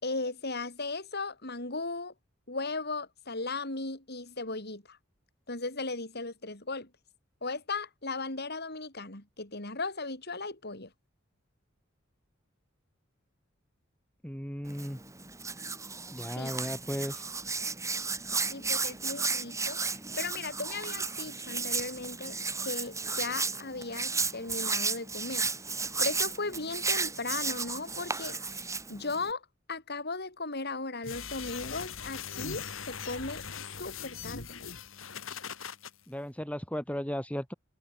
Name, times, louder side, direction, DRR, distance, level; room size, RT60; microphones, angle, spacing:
voice 1, 0.0-2.1 2.5-5.0 5.5-6.9 7.4-10.9 16.4-16.5 18.5-22.3 22.6-25.5 26.0-29.4 29.7-33.4 33.8-34.6, left 3 dB, 55° left, 7.3 m, -37 dB
voice 2, 14.2-15.0 16.1-17.2 36.1-37.5, equal, 5° left, 3.7 m, -35 dB
Hands, 14.7-29.3, right 4 dB, 15° right, 6.7 m, -34 dB
sound 1, 31.0-35.9, left 6 dB, 80° left, 3.1 m, -40 dB
head